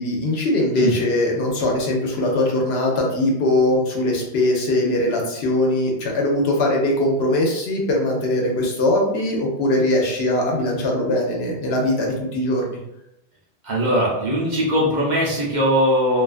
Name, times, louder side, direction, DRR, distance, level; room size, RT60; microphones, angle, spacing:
voice 1, 0.0-12.8, left 1 dB, 75° left, 0 dB, 0.9 m, -21 dB
voice 2, 13.6-16.2, equal, 50° right, -5 dB, 0.7 m, -20 dB
2.4 x 2.2 x 2.4 m, 0.86 s
omnidirectional pair, 1.1 m